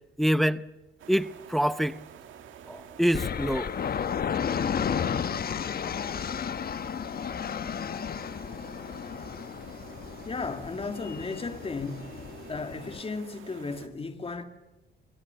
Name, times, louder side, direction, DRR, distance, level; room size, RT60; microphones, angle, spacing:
voice 1, 0.2-0.7 1.1-2.0 2.7-3.7, equal, ahead, 0.7 m, -26 dB
sound 1, 1.0-13.9, right 8 dB, 80° right, 2.2 m, -49 dB
sound 2, 3.1-13.0, left 7 dB, 50° left, 1.2 m, -33 dB
voice 2, 10.3-12.2 12.5-14.4, left 4 dB, 30° left, 2.1 m, -35 dB
26.5 x 19.0 x 6.9 m
cardioid pair, 90°, 20 cm